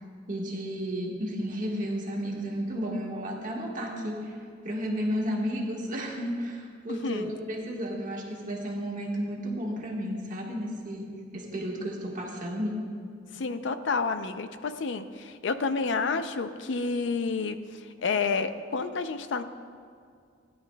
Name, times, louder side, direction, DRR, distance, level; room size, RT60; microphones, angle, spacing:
voice 1, 0.3-4.4 4.6-12.8, equal, 45° right, -1 dB, 1.5 m, -32 dB
voice 2, 13.3-17.6 18.0-19.4, left 4 dB, 70° left, 10 dB, 0.5 m, -29 dB
16.5 x 10.5 x 2.2 m, 2.3 s
head